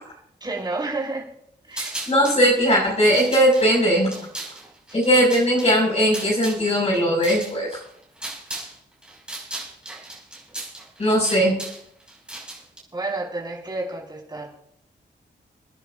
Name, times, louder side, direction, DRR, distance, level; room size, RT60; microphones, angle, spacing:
voice 1, 0.4-1.3 1.7-2.0 4.2-4.3 4.9-5.1 12.9-14.5, right 2 dB, 25° right, -3 dB, 5.4 m, -30 dB
sound 1, 1.7-2.4 3.0-8.8 9.0-12.8, right 1 dB, 5° right, 6.0 m, -36 dB
voice 2, 2.1-4.1 4.9-7.8 11.0-11.5, equal, 35° left, -3 dB, 6.0 m, -19 dB
30.0 x 10.5 x 2.7 m, 0.71 s
wide cardioid pair, 135°, 19 cm